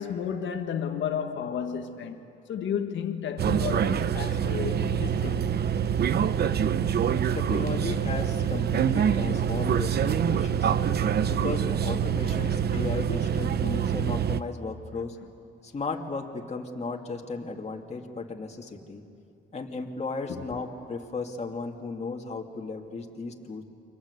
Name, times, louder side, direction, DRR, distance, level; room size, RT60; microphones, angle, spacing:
voice 1, 0.0-2.2 2.5-5.5 20.3-20.4, left 8 dB, 70° left, 1.8 m, -32 dB
sound 1, 3.4-14.4, right 8 dB, 55° right, 0.8 m, -25 dB
voice 2, 7.3-10.7 11.3-15.2 15.6-19.0 19.5-23.6, left 3 dB, 35° left, 2.5 m, -35 dB
29.5 x 23.5 x 8.2 m
cardioid pair, 90°, 20 cm